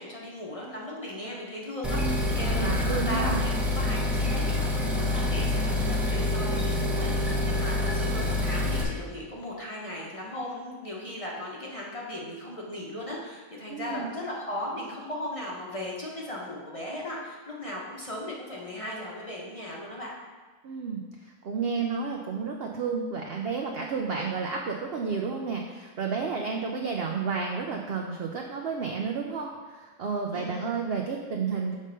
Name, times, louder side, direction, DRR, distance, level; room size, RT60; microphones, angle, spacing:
voice 1, 0.0-20.1 30.3-30.7, left 1 dB, 25° left, -4 dB, 0.9 m, -37 dB
sound 1, 1.8-8.8, left 2 dB, ahead, 0.7 m, -26 dB
voice 2, 2.5-3.4 13.7-14.1 20.6-21.0 21.4-31.8, right 5 dB, 65° right, 1 dB, 0.6 m, -31 dB
6.5 x 3.6 x 5.2 m, 1.4 s
omnidirectional pair, 1.5 m